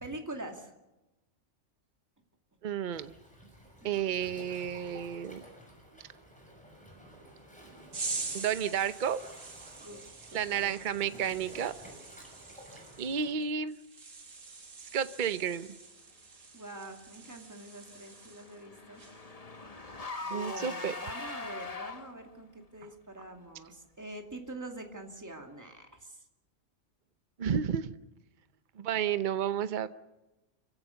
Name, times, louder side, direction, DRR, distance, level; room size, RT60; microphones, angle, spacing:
voice 1, 0.0-0.7 9.8-10.0 10.6-11.1 16.5-19.0 20.2-26.2, right 2 dB, 15° right, 3 dB, 2.4 m, -44 dB
voice 2, 2.6-3.1 3.8-5.4 8.3-9.2 10.3-11.7 13.0-13.8 14.8-15.7 20.3-20.9 27.4-28.0 28.8-29.9, right 8 dB, 45° right, 12 dB, 0.9 m, -31 dB
Waves surf, 2.9-13.3, right 1 dB, 5° left, 6.2 m, -53 dB
sound 1, 7.9-18.6 19.0-19.3, right 4 dB, 75° right, 2.5 m, -44 dB
Car / Engine, 17.3-22.3, left 3 dB, 30° left, 1.4 m, -42 dB
29.0 x 16.0 x 7.0 m, 1.0 s
omnidirectional pair, 1.3 m